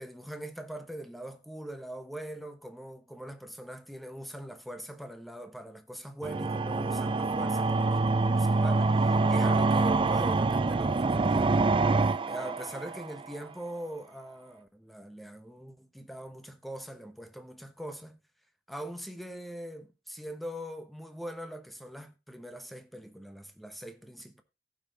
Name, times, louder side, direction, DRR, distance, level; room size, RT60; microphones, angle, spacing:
voice 1, 0.0-8.0 8.3-11.7 12.0-18.2 18.7-24.4, right 1 dB, ahead, 1.1 m, -42 dB
sound 1, 6.2-13.2, right 3 dB, 30° right, 0.4 m, -26 dB
15.5 x 5.7 x 3.9 m
head